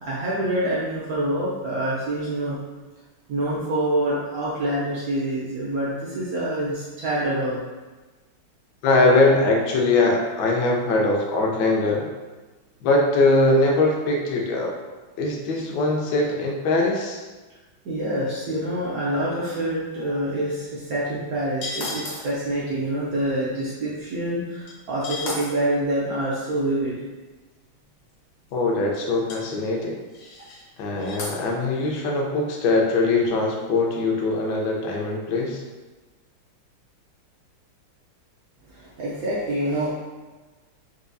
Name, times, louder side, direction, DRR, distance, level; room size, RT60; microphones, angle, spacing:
voice 1, 0.0-2.6 3.3-7.6 17.8-26.9 38.7-39.9, right 1 dB, 80° right, -8 dB, 0.8 m, -26 dB
voice 2, 8.8-12.1 12.8-14.7 15.2-17.2 28.5-30.0 30.8-35.6, left 2 dB, 70° left, -1 dB, 1.1 m, -21 dB
sound 1, 21.6-22.3 24.7-24.8 25.0-25.5 28.0-28.1 28.5-28.6 28.9-29.0 29.3-29.4 30.1-30.6 31.0-31.4, left 2 dB, 90° left, 1.9 m, -33 dB
4.5 x 2.3 x 2.6 m, 1.2 s
omnidirectional pair, 2.4 m